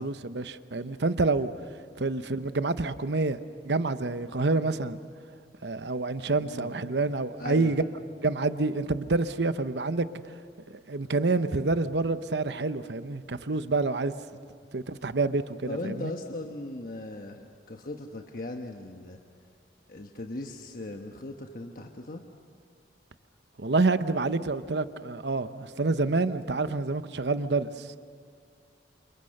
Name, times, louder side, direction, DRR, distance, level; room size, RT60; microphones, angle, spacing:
voice 1, 0.0-1.5 2.0-5.0 5.6-7.9 8.2-10.4 10.7-14.1 14.7-16.1 23.6-28.0, right 3 dB, 75° right, 0.9 m, -28 dB
voice 2, 6.4-6.7 7.4-7.7 15.7-19.2 19.9-22.2, left 2 dB, 50° left, 1.2 m, -38 dB
28.5 x 28.0 x 6.6 m
head